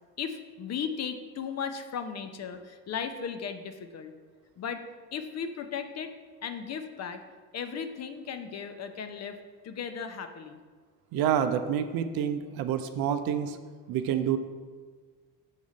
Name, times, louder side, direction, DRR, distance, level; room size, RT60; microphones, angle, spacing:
voice 1, 0.2-4.1 4.6-4.8 5.1-6.1 6.4-7.2 7.5-9.4 9.6-10.6, left 7 dB, 35° left, 8 dB, 0.6 m, -36 dB
voice 2, 11.1-13.6 13.9-14.4, right 9 dB, 55° right, 9 dB, 0.6 m, -28 dB
6.5 x 3.5 x 4.1 m, 1.5 s
hypercardioid pair, 70°, 44 cm